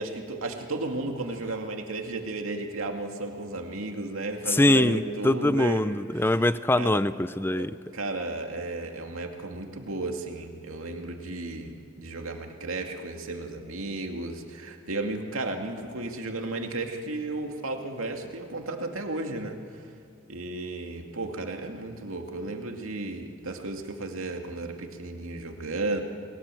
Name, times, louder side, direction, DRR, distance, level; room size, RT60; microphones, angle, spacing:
voice 1, 0.0-5.8 6.1-6.3 6.8-7.0 7.6-19.6 20.3-26.0, right 2 dB, 90° right, 3 dB, 2.4 m, -34 dB
voice 2, 4.5-7.7, left 1 dB, 10° left, 15 dB, 0.5 m, -23 dB
29.0 x 21.0 x 7.7 m, 2.4 s
head